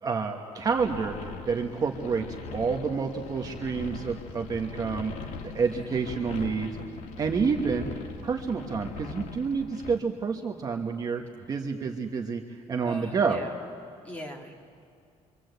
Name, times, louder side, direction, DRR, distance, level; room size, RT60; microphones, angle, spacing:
voice 1, 0.0-5.3 5.5-6.8 7.2-7.9 8.2-11.2 11.5-13.4, right 5 dB, 30° right, 3 dB, 1.2 m, -29 dB
sound 1, 0.6-10.0, left 4 dB, 80° left, 2.0 m, -40 dB
voice 2, 12.8-13.5 14.0-14.5, right 1 dB, 10° left, 0 dB, 2.4 m, -40 dB
26.5 x 24.5 x 8.1 m, 2.4 s
cardioid pair, 175°, 13 cm